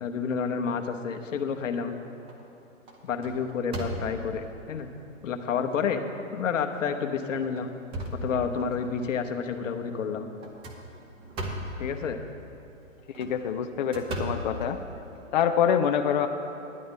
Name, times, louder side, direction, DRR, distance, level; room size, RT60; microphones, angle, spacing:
voice 1, 0.0-2.0 3.0-4.9 5.2-6.0 6.3-7.7 8.2-10.3 11.8-12.2, left 6 dB, 70° left, 6 dB, 1.0 m, -29 dB
sound 1, 1.3-1.8 2.3-2.5 2.9-4.5 5.1-5.2 5.7-5.8 6.7-7.0 7.4-8.9 10.4-11.9 13.0-15.2, right 1 dB, 15° right, 0.6 m, -37 dB
voice 2, 13.2-14.8 15.3-16.3, left 8 dB, 40° left, 6 dB, 0.4 m, -25 dB
11.0 x 8.6 x 5.5 m, 2.8 s
hypercardioid pair, 135°, 39 cm